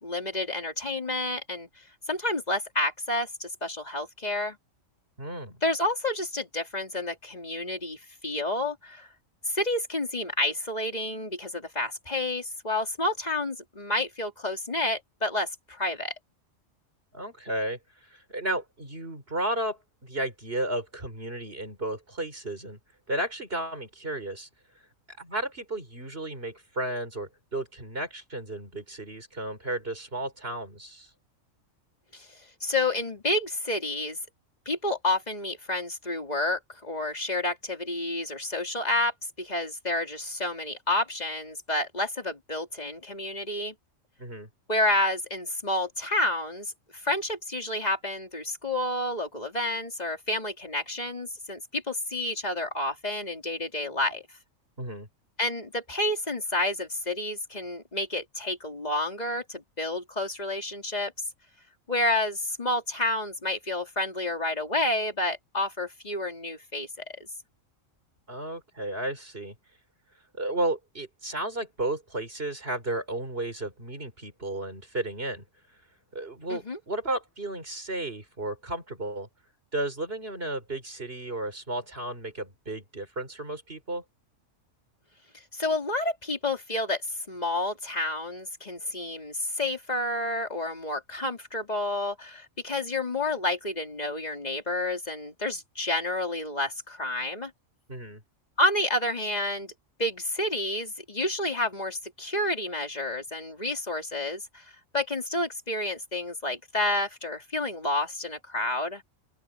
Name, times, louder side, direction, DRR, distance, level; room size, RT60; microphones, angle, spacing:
voice 1, 0.0-1.7 2.1-4.6 5.6-9.1 9.5-16.1 32.1-34.2 34.6-43.7 44.7-54.2 55.4-61.1 61.9-66.9 67.2-67.3 76.5-76.8 85.5-87.0 87.3-97.5 98.6-99.7 100.0-104.6 104.9-109.0, left 2 dB, 30° left, 3.1 m, -30 dB
voice 2, 5.2-5.6 17.1-22.8 23.1-24.5 25.1-31.1 44.2-44.5 54.8-55.1 68.3-69.5 70.3-75.4 76.1-79.3 79.7-84.0 97.9-98.2, right 1 dB, 45° right, 5.0 m, -33 dB
open air
omnidirectional pair, 1.4 m